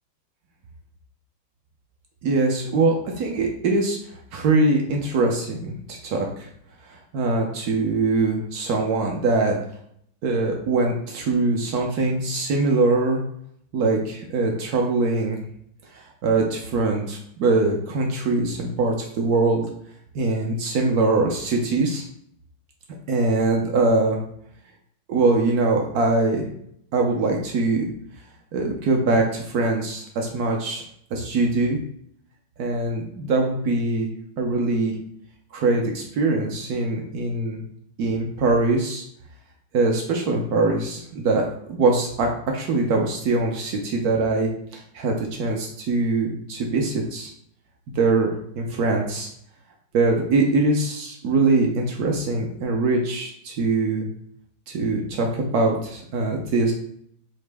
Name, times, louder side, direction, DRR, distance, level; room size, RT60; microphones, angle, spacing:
voice 1, 2.2-4.0 4.3-6.5 6.8-9.6 10.2-13.2 13.7-15.4 15.9-19.7 20.1-22.0 23.1-24.2 25.1-26.5 26.9-27.9 28.5-30.8 31.1-31.8 32.6-34.1 34.4-35.0 35.5-37.6 38.0-39.0 39.7-47.3 47.9-49.3 49.9-54.1 54.7-56.7, right 3 dB, 70° right, 1 dB, 0.9 m, -22 dB
4.2 x 2.8 x 3.3 m, 0.68 s
omnidirectional pair, 2.3 m